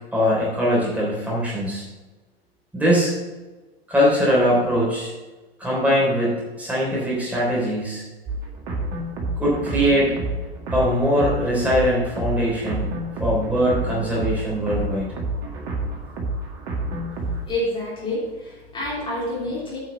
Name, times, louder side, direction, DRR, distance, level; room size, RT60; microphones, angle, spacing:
voice 1, 0.1-1.8 2.7-3.1 3.9-5.1 5.6-8.0 9.4-10.1 10.7-12.9 13.2-15.1, equal, 5° right, -6 dB, 3.4 m, -21 dB
sound 1, 8.3-17.4, right 2 dB, 40° right, 2.0 m, -29 dB
voice 2, 17.1-19.8, left 1 dB, 15° left, -8 dB, 3.4 m, -28 dB
9.3 x 5.6 x 5.6 m, 1.2 s
figure-of-eight pair, 95°, 31 cm